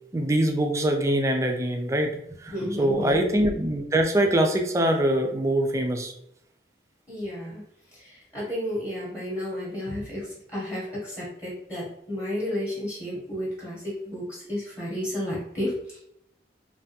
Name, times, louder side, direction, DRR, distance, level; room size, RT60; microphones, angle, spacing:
voice 1, 0.1-2.1 2.4-6.1, right 1 dB, 15° right, 3 dB, 0.3 m, -23 dB
voice 2, 2.5-3.2 7.1-7.6 7.9-16.0, left 1 dB, 15° left, -7 dB, 0.8 m, -32 dB
3.3 x 2.2 x 2.7 m, 0.75 s
head